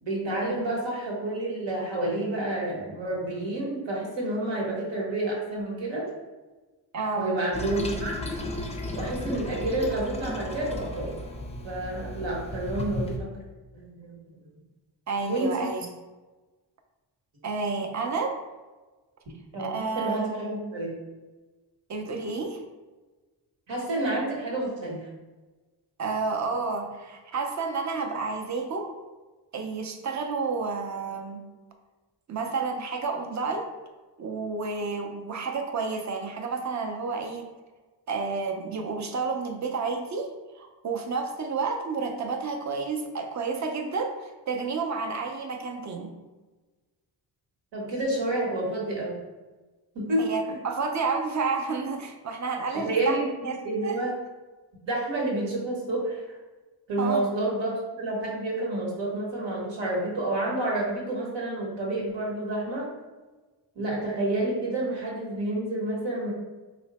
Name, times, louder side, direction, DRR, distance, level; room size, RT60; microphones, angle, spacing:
voice 1, 0.0-6.1 7.2-8.3 8.9-11.2 11.6-13.4 13.7-14.2 15.3-15.7 19.5-21.0 23.7-25.1 47.7-49.2 49.9-50.6 52.7-54.2 54.9-56.4 56.9-62.9 63.7-66.3, right 1 dB, 80° right, -3 dB, 1.2 m, -29 dB
voice 2, 6.9-7.4 15.1-15.9 17.4-18.4 19.6-20.4 21.9-22.6 26.0-28.9 29.5-31.4 32.3-33.7 34.2-37.5 38.1-40.3 40.5-46.1 50.2-53.2 53.4-54.0 57.0-57.3, right 4 dB, 40° right, 3 dB, 0.6 m, -30 dB
Toilet flush, 7.5-13.2, left 1 dB, 15° left, 0.4 m, -34 dB
3.1 x 2.1 x 4.0 m, 1.2 s
cardioid pair, 65°, 44 cm